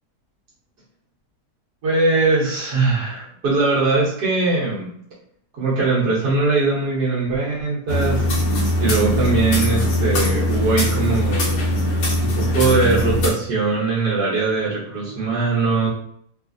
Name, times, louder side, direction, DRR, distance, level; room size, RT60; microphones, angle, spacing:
voice 1, 1.8-4.9 5.5-8.2 8.8-11.6 12.2-15.9, right 3 dB, 75° right, -6 dB, 1.5 m, -21 dB
sound 1, 7.9-13.3, left 1 dB, 75° left, 1.4 m, -20 dB
3.6 x 2.4 x 2.5 m, 0.64 s
omnidirectional pair, 1.8 m